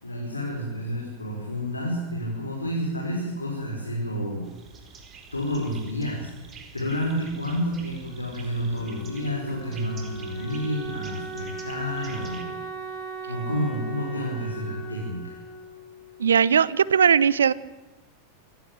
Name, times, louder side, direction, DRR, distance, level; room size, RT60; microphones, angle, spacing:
voice 1, 0.0-4.5 5.3-12.5 13.3-15.4, equal, 80° left, -2 dB, 5.9 m, -30 dB
sound 1, 4.4-12.4, right 5 dB, 25° right, 4.5 m, -47 dB
Wind instrument woodwind instrument, 8.0-16.7, right 4 dB, 20° left, 6.3 m, -38 dB
voice 2, 16.2-17.5, right 7 dB, 70° right, 20 dB, 0.9 m, -19 dB
28.0 x 16.5 x 9.1 m, 1.1 s
figure-of-eight pair, 90°, 0 cm